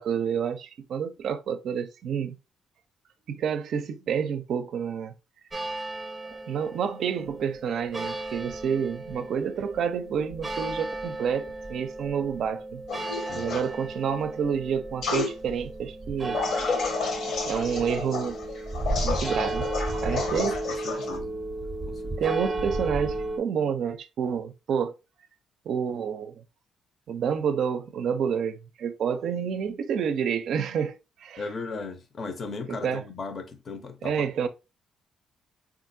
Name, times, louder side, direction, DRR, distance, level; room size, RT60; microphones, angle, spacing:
voice 1, 0.0-2.3 3.3-5.1 6.2-12.8 13.4-16.4 17.5-18.4 19.0-19.7 19.9-20.6 22.2-24.9 25.7-26.3 27.1-31.5 32.7-33.0 34.0-34.5, right 7 dB, 70° right, 0.4 m, -29 dB
sound 1, 5.5-23.4, right 2 dB, 20° right, 0.6 m, -34 dB
sound 2, 12.9-13.7 15.0-15.3 16.3-21.2, left 4 dB, 70° left, 0.9 m, -31 dB
voice 2, 13.3-13.6 20.3-21.3 21.9-22.1 31.4-34.5, left 4 dB, 45° left, 0.6 m, -37 dB
3.6 x 2.4 x 2.5 m
cardioid pair, 90°, 0 cm